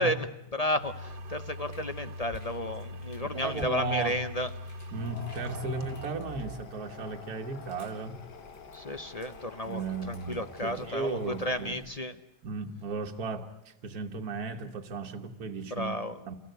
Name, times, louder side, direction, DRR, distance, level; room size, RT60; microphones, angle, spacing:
voice 1, 0.0-4.5 8.7-12.2 15.7-16.2, left 1 dB, 30° left, 10 dB, 0.8 m, -32 dB
sound 1, 0.8-12.0, left 1 dB, 85° right, 2.0 m, -44 dB
sound 2, 1.3-2.6 3.0-3.8 4.1-5.5 5.8-6.7 7.2-8.0 8.3-10.9 11.2-12.1, left 2 dB, 70° left, 4.2 m, -61 dB
voice 2, 3.2-4.2 4.9-8.2 9.6-11.8 12.4-16.0 16.3-16.4, right 4 dB, 65° right, 3 dB, 1.9 m, -35 dB
sound 3, 4.9-12.1, left 7 dB, 90° left, 1.8 m, -48 dB
30.0 x 15.5 x 9.3 m, 0.84 s
omnidirectional pair, 1.7 m